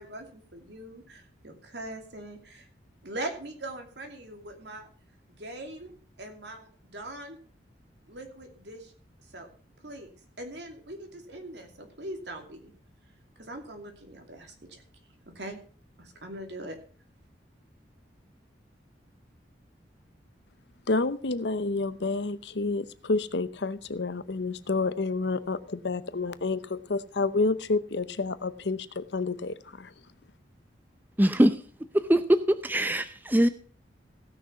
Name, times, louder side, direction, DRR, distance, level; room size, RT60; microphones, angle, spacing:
voice 1, 0.0-2.7 3.0-4.9 5.3-5.9 6.2-7.4 8.1-8.9 9.3-9.5 9.8-10.1 10.4-12.7 13.4-14.8 15.3-15.6 16.0-16.8, right 1 dB, 70° right, 2.7 m, -41 dB
voice 2, 20.9-29.9, left 3 dB, 70° left, 0.8 m, -29 dB
voice 3, 31.2-31.6 31.9-33.5, right 1 dB, 10° right, 0.5 m, -22 dB
16.5 x 6.4 x 5.6 m
head